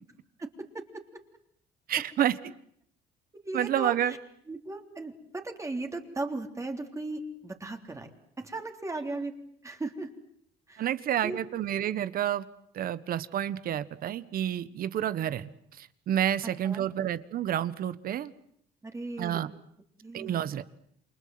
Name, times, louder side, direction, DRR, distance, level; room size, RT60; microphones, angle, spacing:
voice 1, 1.9-2.4 3.5-4.1 10.8-12.4 12.7-15.5 15.8-18.3 19.2-19.5 20.1-20.6, right 11 dB, 60° right, 15 dB, 1.4 m, -29 dB
voice 2, 3.4-4.2 4.5-8.1 8.4-9.3 9.6-10.1 10.7-10.9 11.2-11.4 16.6-16.8 18.8-19.4 20.0-20.4, right 2 dB, 20° right, 4 dB, 3.3 m, -37 dB
29.0 x 24.0 x 7.8 m, 0.68 s
cardioid pair, 110°, 17 cm